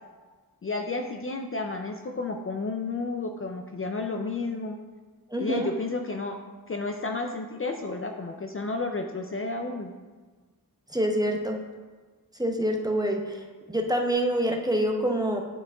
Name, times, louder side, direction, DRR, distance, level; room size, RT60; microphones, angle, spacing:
voice 1, 0.6-4.8 5.4-6.4 6.7-9.9, left 3 dB, 35° left, 3 dB, 0.5 m, -31 dB
voice 2, 5.3-5.7 10.9-11.6 12.4-15.4, equal, 10° right, 2 dB, 0.8 m, -26 dB
10.5 x 4.6 x 2.4 m, 1.4 s
wide cardioid pair, 65°, 37 cm